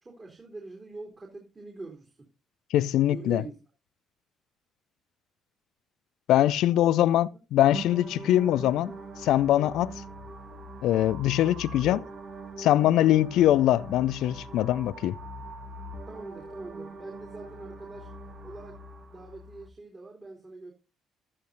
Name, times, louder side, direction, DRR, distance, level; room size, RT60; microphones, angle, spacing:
voice 1, 0.0-2.3 2.9-3.6 6.7-7.0 10.0-10.1 11.4-11.5 11.9-12.0 13.0-13.2 16.0-18.1 18.4-18.8 19.1-20.7, right 2 dB, 30° right, 3.3 m, -44 dB
voice 2, 2.7-3.4 6.3-8.9 9.2-9.9 10.8-12.0 12.6-15.2, left 13 dB, 65° left, 0.4 m, -22 dB
sound 1, 7.7-19.7, right 2 dB, 45° right, 1.7 m, -42 dB
12.5 x 11.0 x 2.7 m
hypercardioid pair, 50°, 0 cm